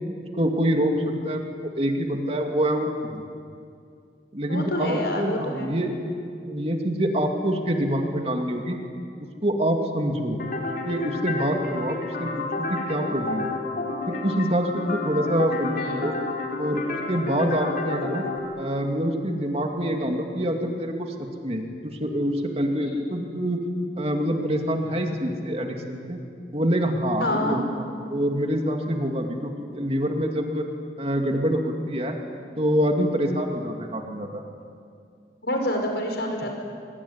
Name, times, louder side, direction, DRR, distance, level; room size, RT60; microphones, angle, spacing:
voice 1, 0.3-0.9 1.2-3.2 4.3-5.9 6.5-8.8 9.4-10.4 10.8-13.6 14.1-16.1 16.6-18.2 18.6-23.6 24.0-26.2 26.5-27.6 28.1-30.7 31.0-32.2 32.6-34.4, equal, 35° right, 3 dB, 2.6 m, -26 dB
voice 2, 4.5-5.7 15.7-16.1 22.8-22.9 27.2-27.6 35.4-36.5, left 1 dB, 70° left, 3 dB, 5.7 m, -27 dB
sound 1, 10.4-18.4, left 3 dB, 50° left, 3.9 m, -31 dB
24.5 x 24.0 x 9.9 m, 2.3 s
head